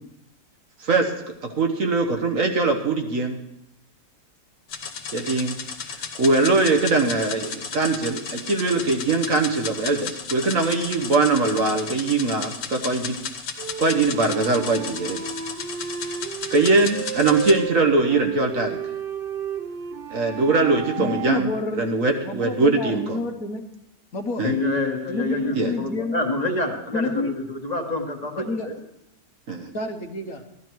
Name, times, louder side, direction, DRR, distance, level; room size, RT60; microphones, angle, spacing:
voice 1, 0.8-1.1 1.6-3.4 5.1-5.6 5.9-13.2 13.8-15.2 16.5-18.8 20.1-21.5 21.8-23.2 24.4-24.5 25.5-25.7 29.5-29.7, right 3 dB, 55° right, 3 dB, 1.5 m, -21 dB
sound 1, 4.7-17.6, left 6 dB, 85° left, 1.8 m, -34 dB
sound 2, 13.6-21.4, right 8 dB, 80° right, 0.5 m, -33 dB
voice 2, 21.0-21.9 22.2-23.6 24.1-24.5 25.1-26.2 26.9-27.3 28.3-28.7 29.7-30.4, left 2 dB, 60° left, 4 dB, 1.5 m, -29 dB
voice 3, 24.4-28.7, left 2 dB, 25° left, 2 dB, 1.6 m, -27 dB
15.0 x 11.5 x 4.6 m, 0.82 s
omnidirectional pair, 1.8 m